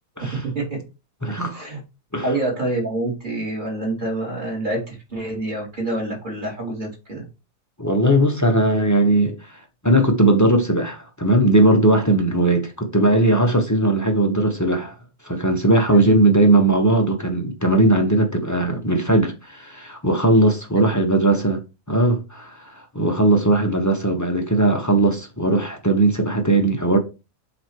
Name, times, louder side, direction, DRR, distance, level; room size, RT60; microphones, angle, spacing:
voice 1, 0.3-0.8 1.5-1.8 2.2-7.2 15.9-16.2 20.9-21.0, right 2 dB, 30° right, 2.8 m, -27 dB
voice 2, 1.2-1.6 2.1-2.3 7.8-14.9 15.2-21.6 21.9-27.0, right 2 dB, 15° left, 0.7 m, -18 dB
8.0 x 3.1 x 4.5 m
omnidirectional pair, 1.8 m